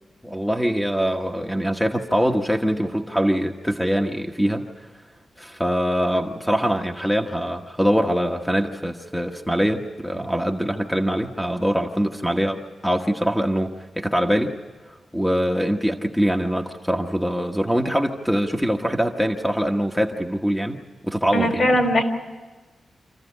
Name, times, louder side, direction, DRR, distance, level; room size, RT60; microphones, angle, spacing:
voice 1, 0.2-4.9 5.4-14.6 14.9-21.7, equal, 5° left, 2 dB, 1.2 m, -23 dB
voice 2, 21.3-22.0, equal, 50° left, 5 dB, 3.8 m, -19 dB
27.0 x 14.5 x 9.8 m, 1.3 s
cardioid pair, 95°, 0 cm